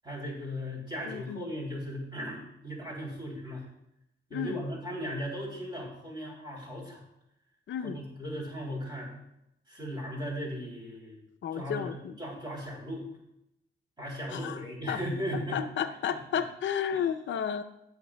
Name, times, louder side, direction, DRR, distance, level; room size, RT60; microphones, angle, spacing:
voice 1, 0.0-3.7 4.3-7.0 7.8-9.1 9.7-11.2 11.5-13.1 14.0-15.6 16.1-16.4 16.9-17.1, equal, 20° right, -3 dB, 3.0 m, -37 dB
voice 2, 1.1-1.4 4.3-4.6 7.7-8.0 11.4-12.2 14.3-14.6 14.9-15.0 15.5-17.6, left 8 dB, 75° left, 8 dB, 0.6 m, -32 dB
19.5 x 6.6 x 2.2 m, 0.82 s
wide cardioid pair, 180°, 20 cm